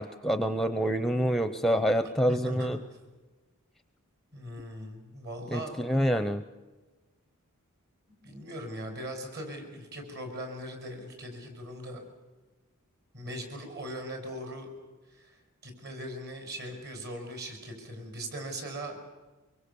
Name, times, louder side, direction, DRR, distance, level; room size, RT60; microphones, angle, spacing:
voice 1, 0.0-2.8 5.5-6.4, equal, ahead, 10 dB, 0.7 m, -27 dB
voice 2, 2.3-2.8 4.3-5.7 8.1-12.0 13.1-14.7 15.1-19.0, equal, 50° right, 4 dB, 5.9 m, -40 dB
24.5 x 23.5 x 7.0 m, 1.2 s
head